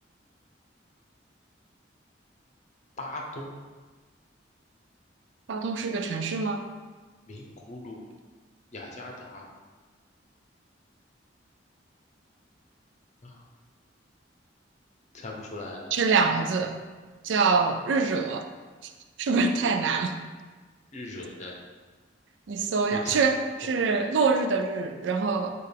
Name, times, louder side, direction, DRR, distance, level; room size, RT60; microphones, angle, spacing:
voice 1, 3.0-3.6 7.3-8.1 8.7-9.5 13.2-13.4 15.1-15.9 19.6-19.7 20.9-21.5 22.9-23.2, left 2 dB, 40° left, -1 dB, 0.7 m, -39 dB
voice 2, 5.5-6.7 15.9-16.7 17.2-18.4 19.2-20.2 22.5-25.5, right 4 dB, 75° right, 6 dB, 0.4 m, -25 dB
6.5 x 2.4 x 3.4 m, 1.4 s
head